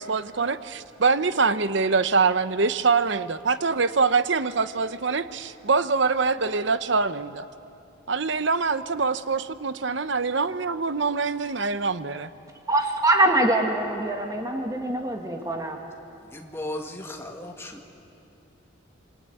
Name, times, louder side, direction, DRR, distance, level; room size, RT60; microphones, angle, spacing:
voice 1, 0.0-7.5 8.1-12.3, right 4 dB, 65° right, 13 dB, 0.9 m, -24 dB
voice 2, 12.7-15.8, right 1 dB, 15° right, 3 dB, 1.6 m, -23 dB
voice 3, 16.3-18.0, left 1 dB, 15° left, 2 dB, 2.0 m, -36 dB
27.0 x 24.0 x 9.1 m, 2.8 s
head